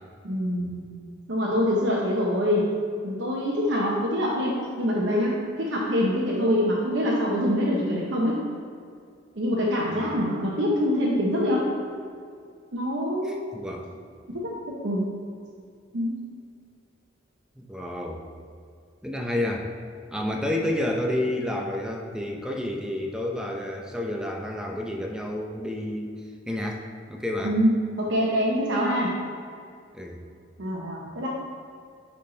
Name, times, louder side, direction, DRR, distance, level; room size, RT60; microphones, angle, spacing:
voice 1, 0.2-0.8 1.3-2.6 3.0-5.3 5.6-8.4 9.4-11.6 12.7-13.4 14.3-15.0 15.9-16.1 27.4-27.7 28.0-29.1 30.6-31.3, equal, 70° right, -5 dB, 0.9 m, -25 dB
voice 2, 13.2-13.9 17.6-18.2 19.0-19.7 20.1-26.1 26.5-26.8 27.1-27.5 29.9-30.2, left 1 dB, 5° right, 1 dB, 0.6 m, -30 dB
9.8 x 3.7 x 3.9 m, 2.2 s
head